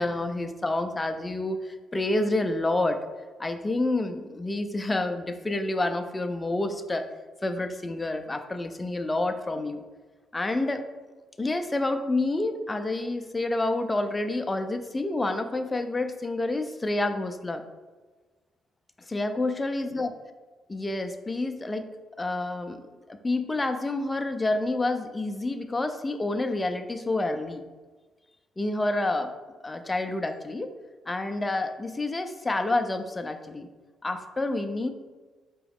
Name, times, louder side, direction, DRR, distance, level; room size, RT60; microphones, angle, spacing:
voice 1, 0.0-3.1 3.4-7.1 7.4-9.8 10.3-10.8 11.4-17.6 19.0-20.1 20.7-21.9 22.2-22.8 23.1-27.6 28.6-29.3 29.6-30.7 31.1-33.7 34.0-34.9, left 2 dB, 20° left, 7 dB, 0.4 m, -28 dB
4.6 x 3.0 x 3.5 m, 1.3 s
cardioid pair, 90°, 0 cm